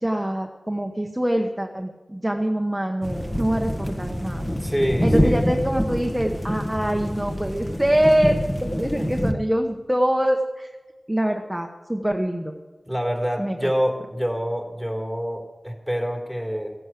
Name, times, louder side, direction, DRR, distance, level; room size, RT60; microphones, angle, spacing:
voice 1, 0.0-4.5 5.0-8.3 8.6-10.7 11.1-12.5 13.4-13.7, right 1 dB, 10° right, 3 dB, 1.1 m, -24 dB
sound 1, 3.0-9.3, equal, 25° left, 1.7 m, -26 dB
voice 2, 4.6-5.4 9.0-9.1 12.9-16.7, equal, 5° left, 1 dB, 3.6 m, -26 dB
16.0 x 11.0 x 7.6 m, 1.2 s
wide cardioid pair, 70°, 0 cm